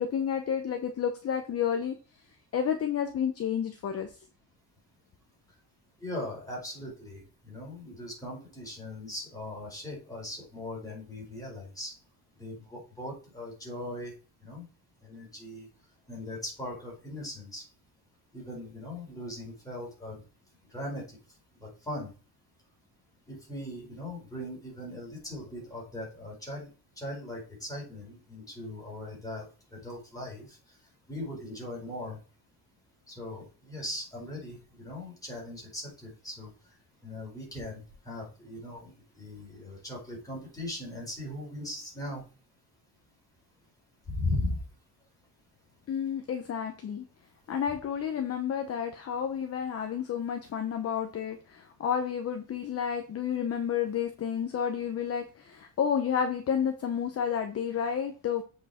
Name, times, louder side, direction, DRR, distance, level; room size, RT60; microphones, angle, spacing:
voice 1, 0.0-1.9 2.5-4.1 45.9-47.0 47.5-58.4, left 8 dB, 35° left, 6 dB, 0.9 m, -30 dB
voice 2, 6.0-11.9 12.4-14.1 14.4-14.7 15.0-15.7 16.1-17.6 18.3-20.2 20.7-21.2 21.6-22.1 23.3-26.7 27.0-30.6 31.1-32.2 33.1-36.5 37.0-42.2 44.1-44.6, left 1 dB, 10° left, -3 dB, 4.5 m, -39 dB
8.0 x 4.9 x 4.3 m, 0.35 s
cardioid pair, 160°, 39 cm